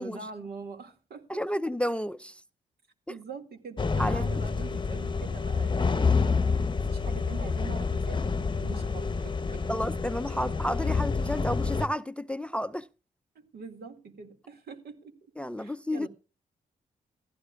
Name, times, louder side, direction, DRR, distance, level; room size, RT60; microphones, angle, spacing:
voice 1, 0.0-1.4 3.1-8.2 8.6-9.9 10.2-10.5 13.4-15.1 15.6-16.1, right 4 dB, 70° right, 2.2 m, -44 dB
voice 2, 1.3-2.4 4.0-4.3 9.7-12.9 15.4-16.1, equal, 5° left, 0.5 m, -31 dB
sound 1, 3.8-11.9, left 4 dB, 30° left, 0.9 m, -28 dB
16.5 x 15.0 x 2.4 m
supercardioid pair, 45°, 17 cm